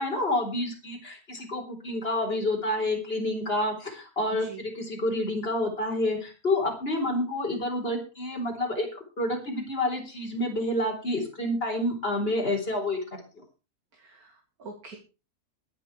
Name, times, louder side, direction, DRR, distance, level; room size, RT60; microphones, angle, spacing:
voice 1, 0.0-8.9 9.2-13.0, left 1 dB, 40° left, 1 dB, 4.3 m, -28 dB
voice 2, 13.9-15.0, right 4 dB, 70° right, 3 dB, 2.5 m, -45 dB
21.0 x 7.1 x 4.8 m, 0.32 s
omnidirectional pair, 1.6 m